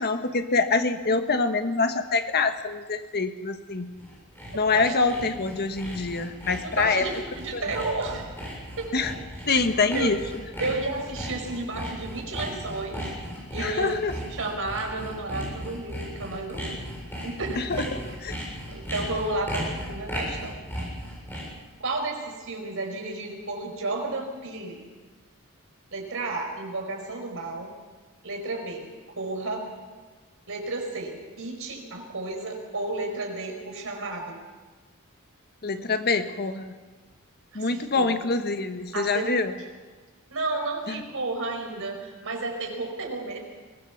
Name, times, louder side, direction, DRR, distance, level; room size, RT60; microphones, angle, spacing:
voice 1, 0.0-3.9 4.5-7.0 7.5-7.6 8.9-9.1 9.5-10.2 13.6-14.1 17.6-17.8 35.6-36.7 37.5-39.5 40.9-41.0, left 4 dB, 50° left, 8 dB, 1.4 m, -25 dB
Sawing, 3.8-21.6, equal, 10° left, 7.6 m, -36 dB
voice 2, 4.7-5.1 6.6-8.3 8.8-8.9 9.9-10.1 10.6-13.0 13.5-14.0 14.3-16.8 17.2-17.7 18.7-20.6 21.8-24.9 25.9-27.7 28.2-28.8 29.2-29.7 30.5-34.4 37.5-38.1 38.9-39.3 40.3-43.4, right 2 dB, 65° right, 2 dB, 4.8 m, -32 dB
23.0 x 17.5 x 7.2 m, 1.4 s
head